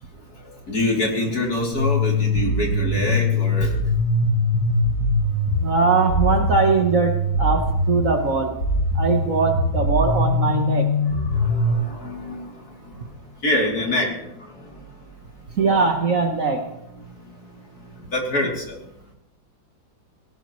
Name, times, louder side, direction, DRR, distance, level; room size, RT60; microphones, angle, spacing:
voice 1, 0.4-3.8 11.1-13.1 13.4-14.8 15.8-15.9 17.8-18.8, left 1 dB, 50° left, -1 dB, 3.6 m, -26 dB
sound 1, 1.7-11.7, left 1 dB, 65° left, 7.6 m, -22 dB
voice 2, 5.6-8.6 8.9-10.9 15.6-16.6, right 4 dB, 45° right, 4 dB, 1.4 m, -21 dB
18.5 x 18.0 x 3.2 m, 0.83 s
omnidirectional pair, 2.1 m